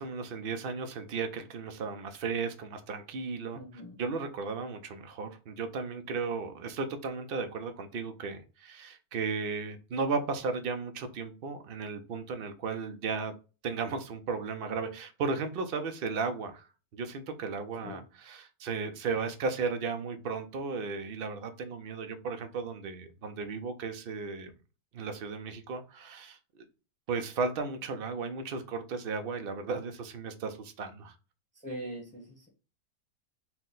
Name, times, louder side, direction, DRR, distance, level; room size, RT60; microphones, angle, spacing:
voice 1, 0.0-13.3 13.6-24.5 24.9-26.6 27.1-31.1, right 4 dB, 60° right, 0.6 m, -35 dB
voice 2, 3.5-3.9 17.8-18.0 31.6-32.5, equal, 5° left, 0.9 m, -41 dB
4.4 x 2.1 x 3.8 m
omnidirectional pair, 1.7 m